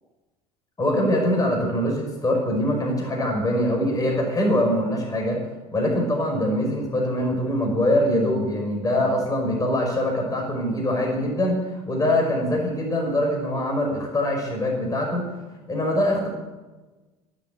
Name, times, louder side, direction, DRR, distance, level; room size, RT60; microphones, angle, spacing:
voice 1, 0.8-5.4 5.7-15.2 15.7-16.3, left 1 dB, 20° left, 0 dB, 5.3 m, -23 dB
21.5 x 7.6 x 8.5 m, 1.2 s
hypercardioid pair, 75°, 18 cm